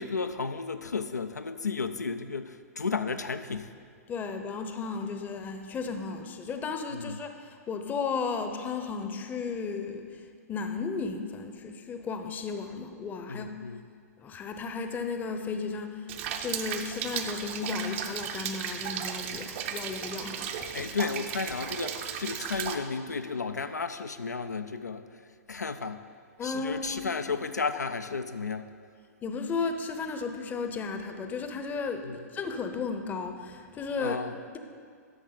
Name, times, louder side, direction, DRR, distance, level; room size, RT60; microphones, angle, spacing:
voice 1, 0.0-3.7 6.9-7.2 13.3-13.8 19.3-19.6 20.7-25.2 25.5-26.0 26.4-28.7 32.0-32.2 34.0-34.4, left 4 dB, 90° left, 9 dB, 0.4 m, -33 dB
voice 2, 4.1-10.1 10.5-13.5 14.2-16.0 16.4-20.9 26.4-27.1 29.2-34.2, left 5 dB, 20° left, 7 dB, 0.7 m, -34 dB
Rain, 16.1-22.7, right 8 dB, 45° right, 0.7 m, -35 dB
12.5 x 6.2 x 3.9 m, 2.1 s
figure-of-eight pair, 110°, 9 cm